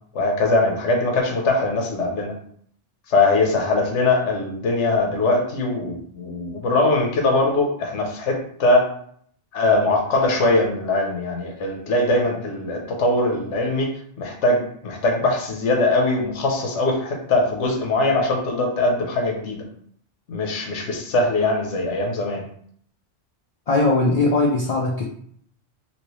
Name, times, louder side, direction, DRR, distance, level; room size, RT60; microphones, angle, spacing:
voice 1, 0.1-2.3 3.1-8.9 9.5-13.9 14.2-19.6 20.3-22.4, left 2 dB, 80° left, 1 dB, 1.1 m, -21 dB
voice 2, 23.7-25.1, left 2 dB, 60° left, 0 dB, 0.4 m, -19 dB
3.1 x 2.9 x 3.0 m, 0.62 s
omnidirectional pair, 1.2 m